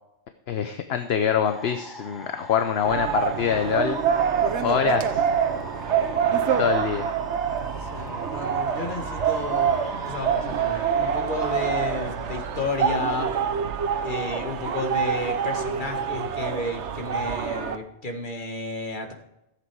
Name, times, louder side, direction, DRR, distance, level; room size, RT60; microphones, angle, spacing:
voice 1, 0.5-4.0 4.6-5.3 6.6-7.1, left 8 dB, 70° left, 8 dB, 1.0 m, -25 dB
sound 1, 1.4-12.5, equal, ahead, 1.7 m, -40 dB
sound 2, 2.8-17.8, right 7 dB, 90° right, 1.1 m, -26 dB
voice 2, 7.8-13.3 14.0-19.1, left 3 dB, 45° left, 3 dB, 1.9 m, -32 dB
14.5 x 8.0 x 4.7 m, 0.87 s
omnidirectional pair, 1.1 m